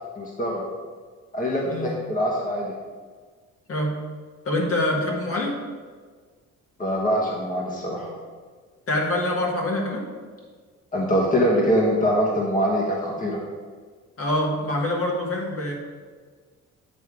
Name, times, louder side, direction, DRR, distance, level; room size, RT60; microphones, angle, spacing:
voice 1, 0.2-0.7 1.3-2.7 6.8-8.1 10.9-13.4, equal, 25° left, -2 dB, 1.3 m, -23 dB
voice 2, 4.4-5.6 8.9-10.0 14.2-15.7, left 1 dB, 50° left, -2 dB, 1.6 m, -25 dB
9.2 x 3.6 x 4.8 m, 1.5 s
cardioid pair, 90°, 30 cm